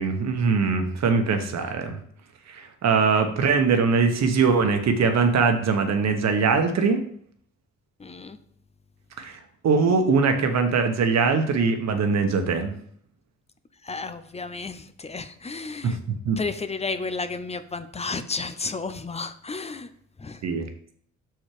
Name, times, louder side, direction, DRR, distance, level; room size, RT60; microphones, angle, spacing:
voice 1, 0.0-2.0 2.5-7.0 9.2-12.7 15.8-16.4 20.4-20.7, right 5 dB, 60° right, 6 dB, 1.2 m, -22 dB
voice 2, 8.0-8.4 13.8-16.0 16.4-19.9 20.2-20.4, left 4 dB, 20° left, 11 dB, 0.6 m, -32 dB
6.3 x 4.6 x 4.9 m, 0.62 s
cardioid pair, 90°, 30 cm